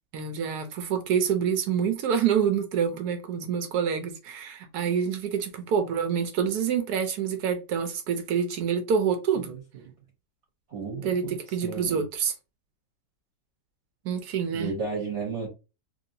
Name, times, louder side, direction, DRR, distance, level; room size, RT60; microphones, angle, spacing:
voice 1, 0.1-9.5 11.0-12.3 14.0-14.7, right 7 dB, 70° right, 1.0 m, -27 dB
voice 2, 10.7-12.0 14.5-15.5, right 4 dB, 45° right, 1.0 m, -33 dB
3.1 x 2.7 x 2.7 m
omnidirectional pair, 2.1 m